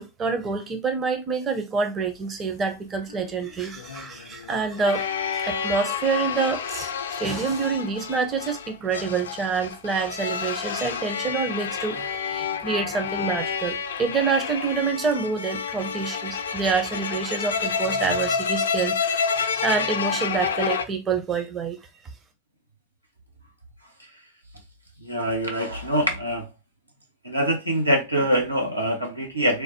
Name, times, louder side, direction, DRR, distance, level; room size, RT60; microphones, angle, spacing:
voice 1, 0.0-19.3 19.6-21.8, right 5 dB, 25° right, 0.5 m, -27 dB
sound 1, 3.1-20.8, left 6 dB, 65° left, 0.3 m, -29 dB
voice 2, 25.0-26.5 27.2-29.6, equal, 85° right, 0.7 m, -24 dB
3.2 x 2.1 x 2.9 m
figure-of-eight pair, 90°, 0 cm